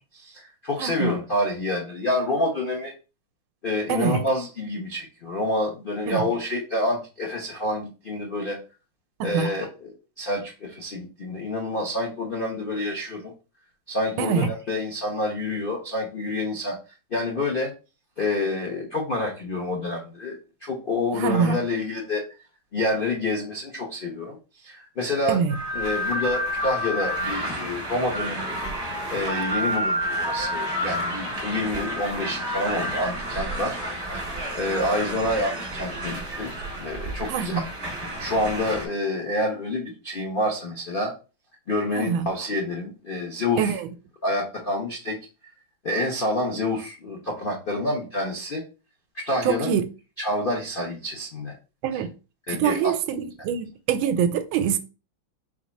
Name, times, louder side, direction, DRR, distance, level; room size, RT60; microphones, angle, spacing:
voice 1, 0.1-2.9 3.6-8.6 9.2-13.3 13.9-16.8 17.1-17.7 18.2-22.2 22.7-24.4 24.6-25.4 25.7-28.6 29.1-33.8 34.1-36.5 36.8-37.6 38.2-41.1 41.7-43.8 44.2-45.2 45.8-48.6 49.1-49.7 50.2-51.5 51.9-52.0 52.5-52.9, left 2 dB, 70° left, 0.5 m, -28 dB
voice 2, 0.8-1.1 3.9-4.2 6.1-6.2 9.2-9.5 14.2-14.5 21.1-21.6 25.3-25.5 37.3-37.7 41.9-42.3 43.6-43.9 49.4-49.9 51.8-52.1 52.5-54.8, right 7 dB, 80° right, 1.4 m, -24 dB
sound 1, 25.5-38.9, equal, 35° right, 1.8 m, -30 dB
4.6 x 2.3 x 4.1 m
omnidirectional pair, 2.2 m